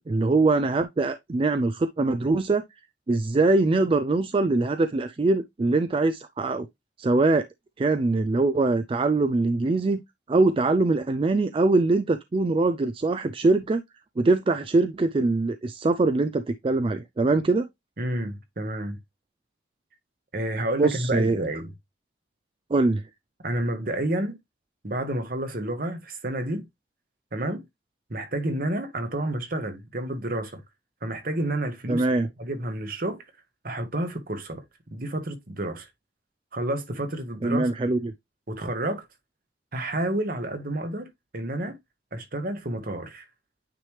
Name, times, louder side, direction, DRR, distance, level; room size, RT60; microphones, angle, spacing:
voice 1, 0.0-2.6 3.1-6.7 7.0-7.5 7.8-10.0 10.3-13.8 14.2-17.7 20.8-21.4 22.7-23.1 31.9-32.3 37.4-38.1, right 3 dB, 30° right, 0.3 m, -23 dB
voice 2, 18.0-19.0 20.3-21.7 23.4-24.4 24.8-26.7 27.3-27.6 28.1-30.6 31.0-32.0 32.4-33.2 33.6-34.6 34.9-35.9 36.5-37.7 38.5-39.0 39.7-41.8 42.1-43.2, right 1 dB, 50° right, 1.3 m, -30 dB
9.1 x 3.3 x 3.1 m
head